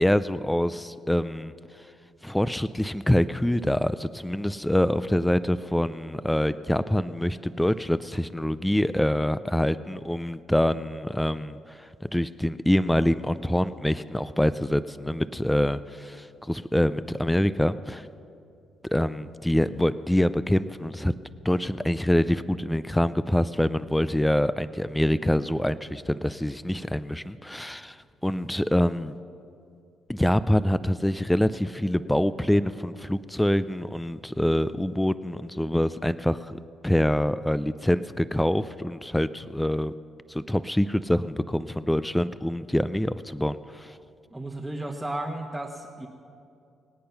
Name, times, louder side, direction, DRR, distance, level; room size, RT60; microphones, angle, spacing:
voice 1, 0.0-1.9 2.2-18.1 18.8-21.1 21.4-29.2 30.1-39.9 40.3-44.0, left 1 dB, 5° left, 15 dB, 0.4 m, -25 dB
voice 2, 44.3-46.1, right 1 dB, 10° right, -1 dB, 1.1 m, -33 dB
24.0 x 8.7 x 5.8 m, 2.5 s
cardioid pair, 90°, 0 cm